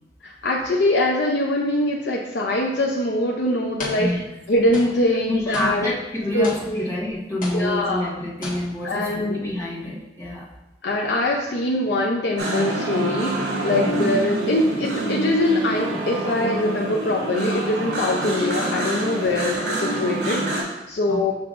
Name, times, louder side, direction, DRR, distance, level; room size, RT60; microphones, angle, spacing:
voice 1, 0.2-4.1 4.5-6.0 6.3-6.9 7.5-8.1 8.8-9.5 10.8-21.3, left 1 dB, 70° left, -2 dB, 0.6 m, -23 dB
sound 1, 2.7-2.9 3.8-4.4 4.7-7.1 7.4-8.1 8.4-9.0, left 2 dB, 50° left, 1.7 m, -36 dB
voice 2, 5.3-10.5 13.8-14.0 19.1-19.5 21.1-21.3, left 1 dB, 15° left, -6 dB, 1.3 m, -28 dB
sound 2, 12.4-20.6, right 1 dB, 80° right, 2.0 m, -26 dB
7.2 x 5.6 x 2.5 m, 0.96 s
head